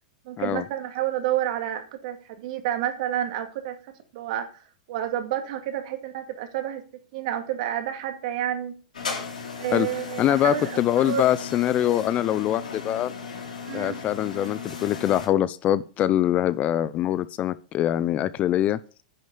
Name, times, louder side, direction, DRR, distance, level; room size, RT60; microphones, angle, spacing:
voice 1, 0.2-3.8 4.1-4.5 4.9-6.8 7.1-8.8 9.6-11.3 13.7-14.0, right 11 dB, 60° right, 2.4 m, -29 dB
sound 1, 8.9-15.3, left 5 dB, 85° left, 3.6 m, -36 dB
voice 2, 10.2-13.1 13.7-18.8, left 12 dB, 35° left, 0.6 m, -23 dB
10.5 x 6.3 x 6.8 m
hypercardioid pair, 105°, 4 cm